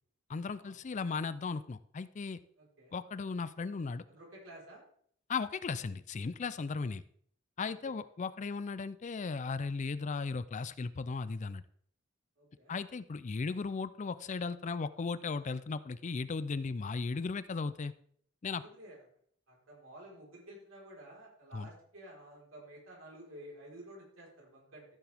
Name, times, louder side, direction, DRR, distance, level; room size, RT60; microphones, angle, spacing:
voice 1, 0.3-2.4 2.9-4.0 5.3-7.0 7.6-11.6 12.7-17.9 18.4-18.6 21.5-21.7, left 4 dB, 35° left, 15 dB, 0.4 m, -36 dB
voice 2, 2.6-3.0 4.1-4.8 7.8-7.9 12.4-12.8 18.4-19.0 19.5-24.9, right 1 dB, 75° right, -3 dB, 4.3 m, -52 dB
14.0 x 7.3 x 3.5 m, 0.62 s
head